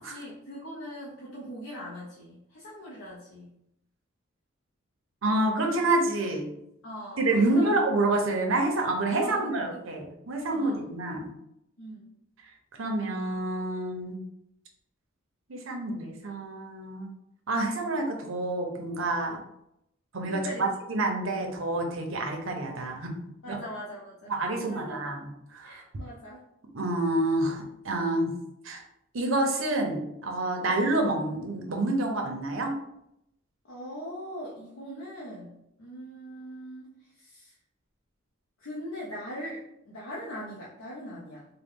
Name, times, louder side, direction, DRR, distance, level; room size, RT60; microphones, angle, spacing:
voice 1, 0.0-3.5 6.8-7.8 9.2-9.8 10.5-10.8 11.8-12.1 20.3-20.7 23.4-25.2 25.6-26.4 33.7-37.5 38.6-41.5, equal, 75° left, -5 dB, 0.7 m, -41 dB
voice 2, 5.2-6.5 7.2-11.3 12.8-14.2 15.5-17.1 17.5-19.4 20.1-23.1 23.5-23.6 24.3-25.8 26.7-28.3 28.6-28.8 29.1-32.7, right 2 dB, 80° right, 2 dB, 0.8 m, -28 dB
3.9 x 2.2 x 3.6 m, 0.79 s
head